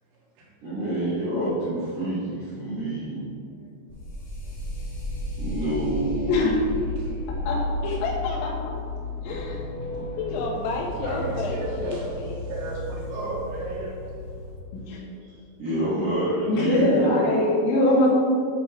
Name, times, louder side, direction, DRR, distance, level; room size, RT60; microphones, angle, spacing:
voice 1, 0.6-3.2 5.4-6.3 9.9-10.0 15.3-17.1, right 1 dB, 65° right, -11 dB, 1.6 m, -27 dB
sound 1, 3.9-14.6, left 1 dB, 45° left, 2.7 m, -33 dB
voice 2, 7.8-8.5 10.2-12.5, left 4 dB, 85° left, -1 dB, 3.3 m, -30 dB
voice 3, 9.2-9.6 14.7-15.0 16.5-18.1, left 1 dB, 70° left, -5 dB, 3.4 m, -22 dB
voice 4, 11.0-12.1 12.5-14.0, right 2 dB, 85° right, -6 dB, 4.3 m, -33 dB
10.5 x 5.6 x 4.4 m, 2.4 s
omnidirectional pair, 5.8 m